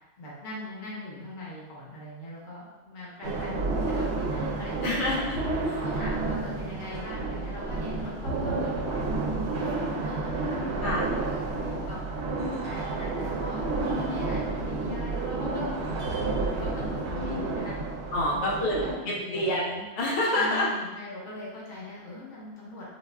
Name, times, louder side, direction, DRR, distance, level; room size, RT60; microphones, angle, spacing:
voice 1, 0.2-5.2 5.7-9.2 9.5-12.0 12.6-15.7 16.0-17.8 18.3-19.6 20.3-22.8, left 1 dB, 45° left, -6 dB, 1.0 m, -40 dB
sound 1, 3.2-18.9, right 3 dB, 70° right, 0.8 m, -30 dB
voice 2, 4.8-5.8 10.8-11.1 18.1-18.8 19.0-20.7, left 1 dB, 85° left, -3 dB, 0.9 m, -27 dB
4.0 x 2.4 x 2.3 m, 1.1 s
omnidirectional pair, 1.2 m